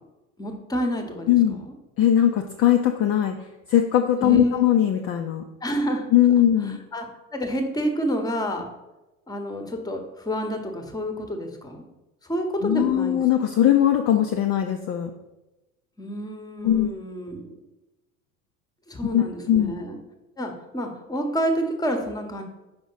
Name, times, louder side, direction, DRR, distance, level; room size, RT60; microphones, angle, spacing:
voice 1, 0.4-1.7 4.2-4.7 5.6-6.0 6.6-7.1 7.3-8.7 9.3-11.8 12.3-13.2 16.0-17.6 18.9-20.0 20.4-22.4, equal, 10° left, 5 dB, 1.0 m, -28 dB
voice 2, 1.3-1.6 2.0-3.3 3.7-5.4 6.1-6.8 12.6-15.1 16.6-16.9 19.1-19.7, left 11 dB, 35° left, 4 dB, 0.5 m, -20 dB
5.1 x 5.1 x 3.9 m, 0.99 s
figure-of-eight pair, 70°, 43 cm